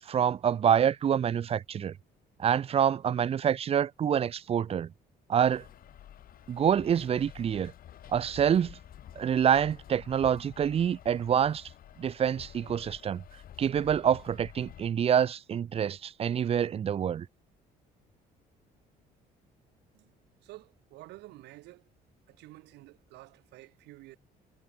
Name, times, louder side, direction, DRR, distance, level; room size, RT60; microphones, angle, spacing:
voice 1, 0.1-1.9 2.4-4.9 5.3-5.6 6.5-7.7 8.1-8.8 9.2-11.7 12.0-13.2 13.6-17.3, right 8 dB, 35° right, 0.5 m, -26 dB
sound 1, 5.4-14.9, left 11 dB, 60° left, 5.7 m, -50 dB
voice 2, 20.4-21.9 22.3-24.2, right 19 dB, 85° right, 4.5 m, -50 dB
cardioid pair, 110°, 17 cm